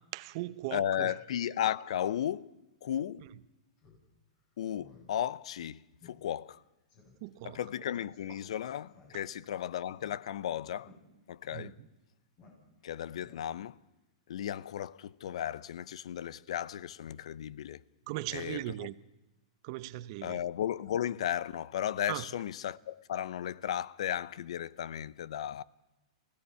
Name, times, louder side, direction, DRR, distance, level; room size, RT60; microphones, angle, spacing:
voice 1, 0.1-1.1 7.2-7.6 9.1-9.2 11.5-11.7 18.1-18.9 19.6-20.4 22.1-22.2, right 17 dB, 45° right, 0.7 m, -38 dB
voice 2, 0.7-2.5 2.8-3.3 4.6-6.6 7.4-10.9 11.3-11.8 12.8-13.8 14.3-17.8 18.3-18.9 20.2-25.6, left 10 dB, 75° left, 0.7 m, -35 dB
Speech synthesizer, 3.8-4.0 4.4-4.5 4.8-5.1 5.4-5.5 6.0-6.2 6.5-6.6 6.9-7.2 7.9-8.2 8.9-9.5 9.8-10.4 10.8-11.0 11.6-11.7 12.4-12.9 13.2-13.7, left 4 dB, 35° left, 7.6 m, -58 dB
28.0 x 16.5 x 5.7 m
hypercardioid pair, 145°, 3 cm